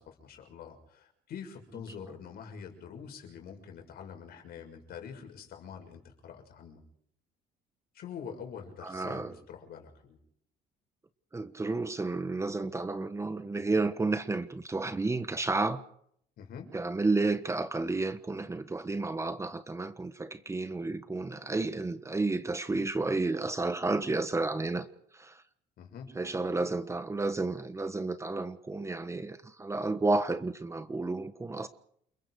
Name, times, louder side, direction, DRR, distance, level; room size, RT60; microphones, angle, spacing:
voice 1, 0.0-6.8 7.9-10.2 16.4-16.7 25.8-26.1, left 7 dB, 65° left, 6.4 m, -45 dB
voice 2, 8.8-9.3 11.3-15.8 16.7-24.9 25.1-25.4 26.1-31.7, right 3 dB, 15° right, 1.4 m, -31 dB
29.0 x 22.0 x 4.9 m
cardioid pair, 110°, 17 cm